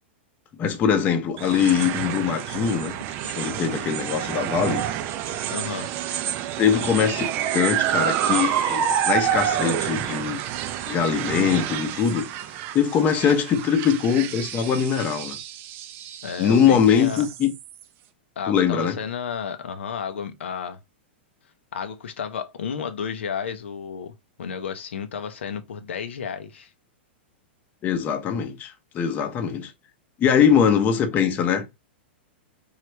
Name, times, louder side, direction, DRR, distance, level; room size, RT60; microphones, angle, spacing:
voice 1, 0.6-2.9 3.4-4.8 6.6-7.2 7.5-10.4 10.9-12.5 12.7-15.4 16.4-17.5 18.5-19.0 27.8-29.7 30.2-31.6, left 7 dB, 25° left, 0.6 m, -22 dB
sound 1, 1.4-17.8, right 10 dB, 35° right, 0.3 m, -28 dB
voice 2, 5.5-5.9 16.2-17.3 18.4-20.8 21.7-24.1 24.4-26.7, left 7 dB, 85° left, 0.6 m, -32 dB
3.1 x 2.3 x 3.1 m
hypercardioid pair, 135°, 6 cm